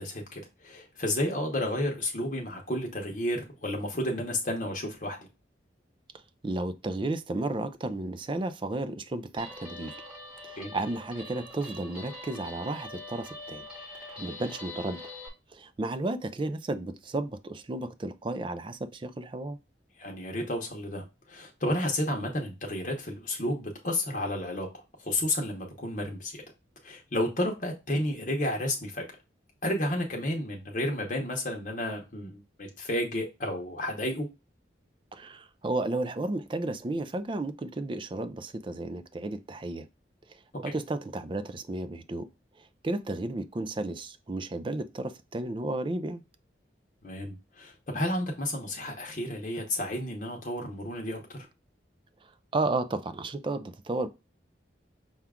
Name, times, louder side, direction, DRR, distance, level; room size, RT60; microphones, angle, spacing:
voice 1, 0.0-5.3 10.6-10.7 20.0-24.7 25.0-26.4 26.8-29.1 29.6-34.3 40.7-40.8 47.0-51.4, left 1 dB, 45° left, 0.9 m, -31 dB
voice 2, 6.4-10.0 10.4-13.6 14.2-15.0 15.5-19.6 35.1-39.9 40.3-42.3 42.6-46.2 52.2-54.1, right 2 dB, 25° right, 0.4 m, -33 dB
Guitar, 9.4-15.3, left 1 dB, 5° right, 1.2 m, -44 dB
5.7 x 2.4 x 3.5 m
head